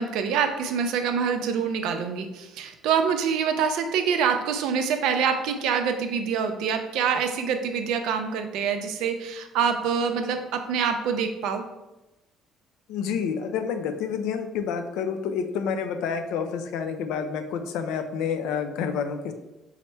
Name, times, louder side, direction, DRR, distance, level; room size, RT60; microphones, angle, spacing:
voice 1, 0.0-11.6, right 6 dB, 75° right, 6 dB, 0.5 m, -25 dB
voice 2, 12.9-19.3, left 6 dB, 85° left, 8 dB, 0.5 m, -29 dB
5.6 x 2.1 x 4.3 m, 1.0 s
cardioid pair, 165°, 0 cm